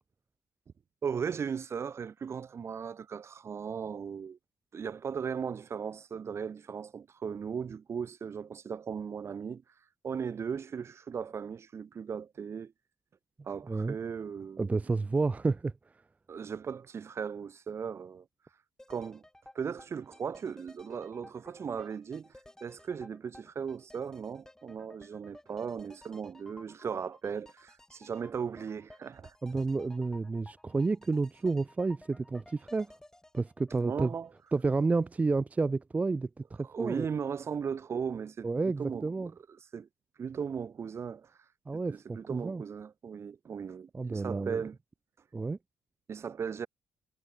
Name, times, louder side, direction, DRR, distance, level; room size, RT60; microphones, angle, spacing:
voice 1, 1.0-4.4 4.7-9.6 10.0-12.7 13.4-14.7 16.3-18.2 18.9-19.2 19.5-22.3 22.6-29.3 33.8-34.3 36.6-38.5 38.8-39.3 39.7-39.9 40.2-41.3 41.9-44.8 46.1-46.7, right 6 dB, 45° right, 0.9 m, -37 dB
voice 2, 14.6-15.7 29.4-32.9 33.3-34.1 34.5-37.1 38.4-39.3 41.7-42.6 43.9-44.6 45.3-45.6, right 3 dB, 25° right, 0.5 m, -30 dB
sound 1, 18.8-34.7 35.0-35.1, left 1 dB, 10° left, 1.6 m, -56 dB
supercardioid pair, 70°, 6 cm